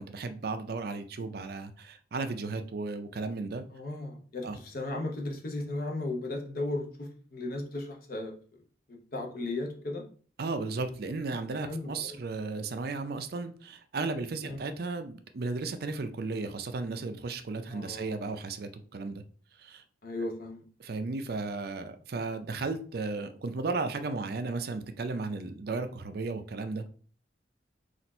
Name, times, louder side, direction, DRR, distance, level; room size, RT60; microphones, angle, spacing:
voice 1, 0.0-3.6 4.4-4.6 10.4-19.2 19.6-19.8 20.8-26.9, right 3 dB, 55° right, 9 dB, 0.4 m, -35 dB
voice 2, 3.7-8.3 8.9-10.0 11.7-12.2 14.4-14.6 17.7-18.2 20.0-20.6, left 2 dB, 50° left, 2 dB, 0.9 m, -36 dB
4.2 x 2.5 x 4.2 m, 0.42 s
head